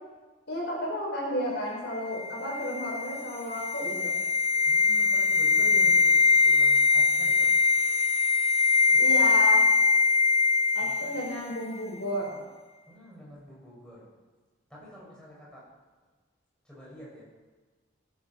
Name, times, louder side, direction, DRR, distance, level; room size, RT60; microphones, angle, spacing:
voice 1, 0.5-4.2 9.0-9.7 10.7-12.4, equal, 65° left, -2 dB, 5.8 m, -32 dB
sound 1, 2.1-11.4 11.6-11.8, left 4 dB, 35° left, 0.9 m, -22 dB
voice 2, 4.7-7.9 8.9-9.0 10.8-11.4 12.9-14.1 14.7-15.6 16.6-17.2, equal, 5° left, -7 dB, 6.8 m, -47 dB
23.0 x 9.5 x 6.3 m, 1.3 s
head